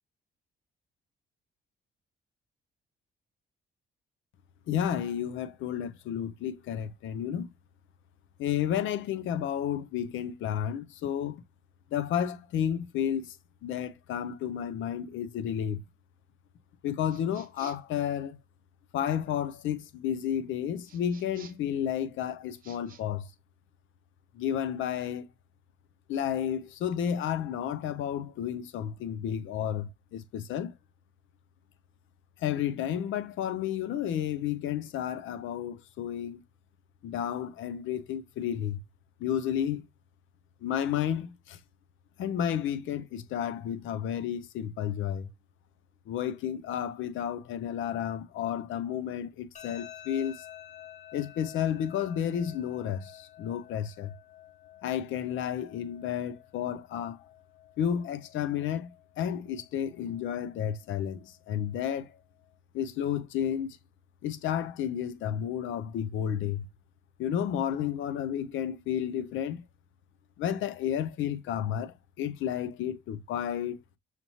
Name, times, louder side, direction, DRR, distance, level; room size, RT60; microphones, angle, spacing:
voice 1, 4.7-7.5 8.4-11.4 11.9-13.4 13.6-15.9 16.8-18.4 18.9-23.3 24.3-25.3 26.1-30.7 32.4-36.4 37.0-38.8 39.2-39.9 40.6-41.6 42.2-45.3 46.1-50.4 51.1-54.1 54.8-57.2 57.8-58.9 59.2-62.1 62.7-63.8 64.2-66.7 67.2-69.6 70.4-73.8, left 9 dB, 80° left, 0.5 m, -32 dB
sound 1, 17.1-18.0 20.8-21.7 22.5-23.0, right 7 dB, 45° right, 0.8 m, -53 dB
sound 2, 49.6-62.5, left 11 dB, 35° left, 1.0 m, -52 dB
5.9 x 2.7 x 2.8 m
cardioid pair, 90°, 20 cm